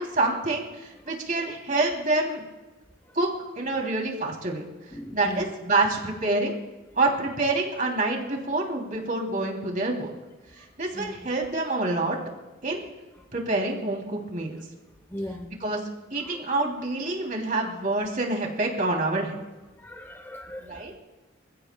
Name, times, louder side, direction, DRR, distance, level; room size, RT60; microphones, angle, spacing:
voice 1, 0.0-2.4 3.1-3.3 3.6-4.6 5.1-6.5 7.0-10.2 10.8-12.2 12.6-12.8 13.3-14.6 15.6-15.8 16.1-19.4 20.6-20.9, right 2 dB, 45° right, 3.1 m, -27 dB
voice 2, 4.9-5.4 10.6-10.7 10.9-11.3 15.1-15.6 16.2-16.4 19.8-21.0, left 1 dB, 10° left, 0.8 m, -39 dB
29.0 x 16.5 x 2.3 m
head